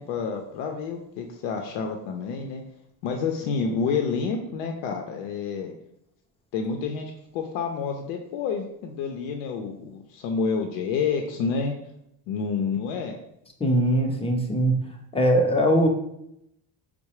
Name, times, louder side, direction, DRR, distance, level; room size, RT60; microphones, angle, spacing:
voice 1, 0.0-2.6 3.0-5.7 6.5-11.7 12.3-13.2, left 5 dB, 85° left, 3 dB, 0.6 m, -29 dB
voice 2, 13.6-14.8 15.1-15.9, right 1 dB, 15° left, 2 dB, 0.5 m, -21 dB
4.6 x 2.0 x 3.0 m, 0.77 s
supercardioid pair, 95°, 47 cm